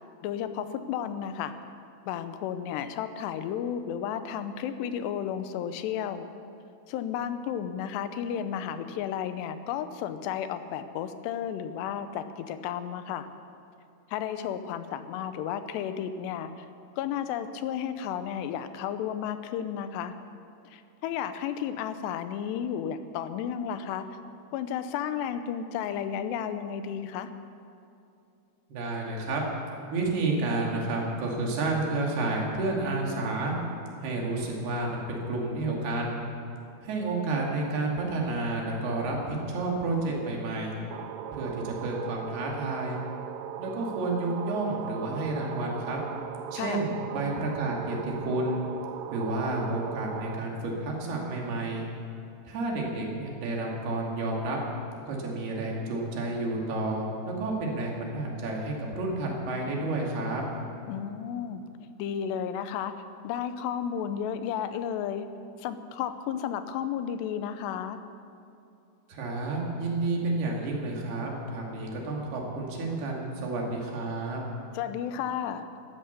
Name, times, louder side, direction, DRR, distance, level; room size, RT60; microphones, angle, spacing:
voice 1, 0.2-1.6 2.1-6.3 6.9-13.3 14.1-16.5 17.0-20.1 20.7-24.2 24.5-27.3 46.5-46.8 60.9-61.6 62.0-62.9 63.2-65.3 65.6-68.0 74.7-75.7, left 9 dB, 85° left, 10 dB, 2.9 m, -33 dB
voice 2, 28.7-29.4 29.9-33.5 34.0-36.2 36.8-40.7 41.3-43.0 43.6-46.0 46.5-48.6 49.1-51.9 52.4-54.6 55.1-60.4 69.1-74.4, right 2 dB, 70° right, -1 dB, 4.4 m, -30 dB
sound 1, 40.9-50.4, right 9 dB, 85° right, 2.8 m, -38 dB
16.0 x 13.0 x 6.8 m, 2.6 s
omnidirectional pair, 4.8 m